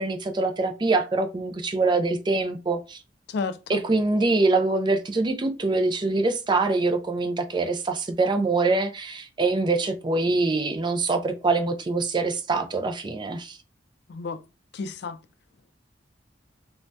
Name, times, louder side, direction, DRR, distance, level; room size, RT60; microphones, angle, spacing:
voice 1, 0.0-3.0 3.7-13.6, right 3 dB, 25° right, 0.4 m, -24 dB
voice 2, 3.3-3.8 14.1-14.4 14.7-15.2, left 4 dB, 60° left, 0.3 m, -31 dB
2.6 x 2.1 x 3.3 m
head